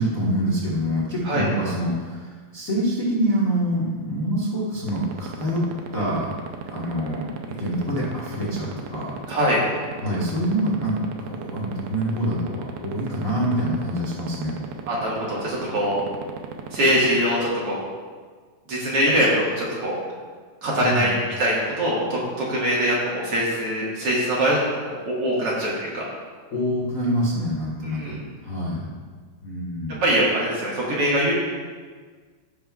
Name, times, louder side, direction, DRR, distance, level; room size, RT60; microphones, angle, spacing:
voice 1, 0.0-5.6 5.9-6.3 6.7-9.2 10.0-14.5 20.8-21.2 26.5-28.9 29.4-30.0, equal, 75° left, -7 dB, 0.7 m, -26 dB
sound 1, 4.9-17.2, right 8 dB, 85° right, 2.6 m, -35 dB
voice 2, 9.3-9.6 14.9-16.0 16.7-17.8 18.7-20.0 20.6-21.1 21.4-26.0 27.8-28.2 30.0-31.3, equal, 50° right, -6 dB, 2.3 m, -23 dB
16.5 x 5.9 x 2.4 m, 1.5 s
omnidirectional pair, 4.1 m